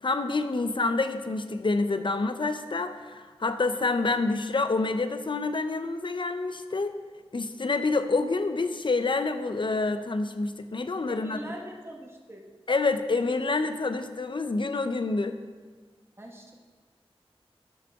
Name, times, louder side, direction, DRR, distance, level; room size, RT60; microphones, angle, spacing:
voice 1, 0.0-6.9 7.3-11.4 12.7-15.4, left 3 dB, 50° left, 9 dB, 0.6 m, -27 dB
voice 2, 11.1-12.4 16.2-16.5, right 1 dB, 25° right, 0 dB, 1.3 m, -42 dB
12.0 x 5.7 x 3.5 m, 1.5 s
wide cardioid pair, 65°, 10 cm